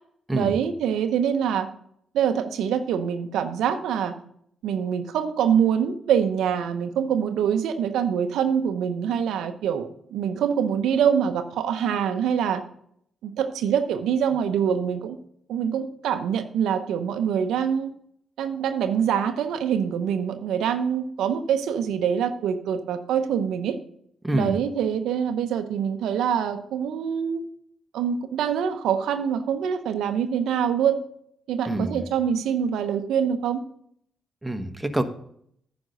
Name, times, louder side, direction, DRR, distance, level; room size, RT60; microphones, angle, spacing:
voice 1, 0.3-1.7 2.1-4.2 4.6-12.6 13.2-15.2 15.5-17.9 18.4-23.8 24.3-27.5 27.9-31.0 31.5-33.6, right 8 dB, 80° right, 0.7 m, -25 dB
voice 2, 24.2-24.6 31.7-32.0 34.4-35.0, right 1 dB, 10° right, 1.2 m, -26 dB
9.7 x 5.2 x 6.6 m
supercardioid pair, 55°, 0 cm